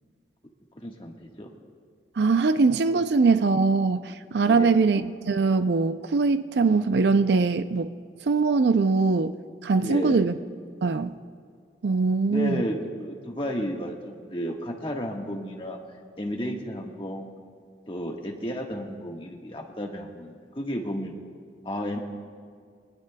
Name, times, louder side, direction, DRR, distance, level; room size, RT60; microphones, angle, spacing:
voice 1, 0.8-1.5 4.4-4.7 9.8-10.2 12.3-15.8 16.2-17.3 17.9-21.1 21.6-22.0, equal, 30° left, 1 dB, 1.4 m, -32 dB
voice 2, 2.2-5.0 5.3-7.9 8.3-9.4 9.6-10.3 10.8-11.1 11.8-12.6, right 4 dB, 75° right, 10 dB, 0.5 m, -22 dB
23.0 x 20.0 x 2.3 m, 2.1 s
head